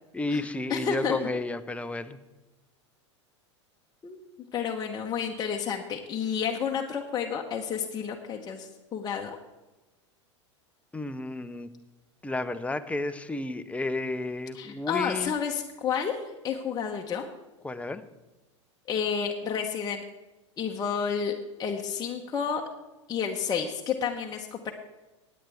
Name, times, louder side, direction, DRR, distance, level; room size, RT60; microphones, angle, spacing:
voice 1, 0.1-2.2 10.9-11.7 12.2-15.3 17.6-18.0, left 2 dB, 10° left, 10 dB, 0.7 m, -32 dB
voice 2, 0.7-1.2 4.0-4.2 4.5-9.4 14.5-17.3 18.9-20.0 20.6-22.6 23.1-24.7, left 7 dB, 25° left, 1 dB, 1.1 m, -30 dB
16.5 x 9.5 x 3.5 m, 1.1 s
hypercardioid pair, 95°, 15 cm